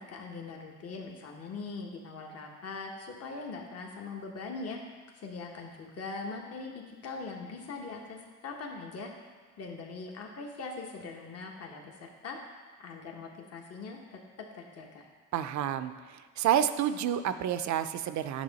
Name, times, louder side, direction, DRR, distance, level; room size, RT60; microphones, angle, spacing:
voice 1, 0.0-4.8 5.2-9.1 9.6-12.4 12.8-15.0, left 4 dB, 55° left, 1 dB, 1.1 m, -41 dB
voice 2, 15.3-15.9 16.4-18.4, right 10 dB, 70° right, 11 dB, 0.5 m, -29 dB
9.3 x 6.3 x 4.0 m, 1.4 s
cardioid pair, 90°, 30 cm